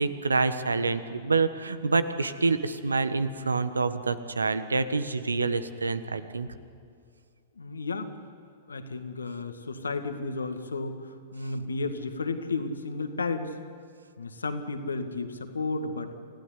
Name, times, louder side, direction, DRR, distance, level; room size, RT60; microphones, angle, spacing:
voice 1, 0.0-6.5, right 4 dB, 80° right, 12 dB, 1.4 m, -27 dB
voice 2, 7.6-8.1 8.7-13.5 14.2-16.1, left 3 dB, 80° left, 7 dB, 2.1 m, -33 dB
28.0 x 16.0 x 9.8 m, 2.2 s
figure-of-eight pair, 105°, 0 cm